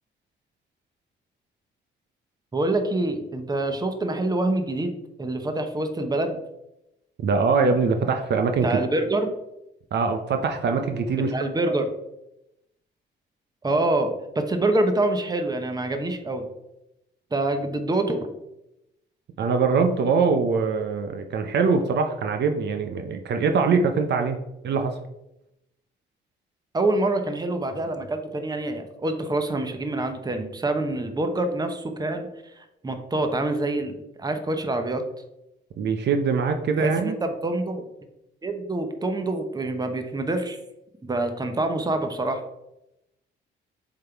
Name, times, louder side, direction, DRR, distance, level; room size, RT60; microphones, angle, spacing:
voice 1, 2.5-4.9 5.2-6.4 8.6-9.3 11.1-11.9 13.6-16.4 17.3-18.3 26.7-35.0 36.8-37.8 38.4-40.6 41.0-42.4, right 2 dB, 20° right, 6 dB, 0.9 m, -26 dB
voice 2, 7.2-8.8 9.9-11.3 19.4-24.4 24.6-25.0 35.8-37.2, right 5 dB, 60° right, 6 dB, 0.7 m, -23 dB
7.4 x 3.7 x 4.5 m, 0.88 s
cardioid pair, 90°, 20 cm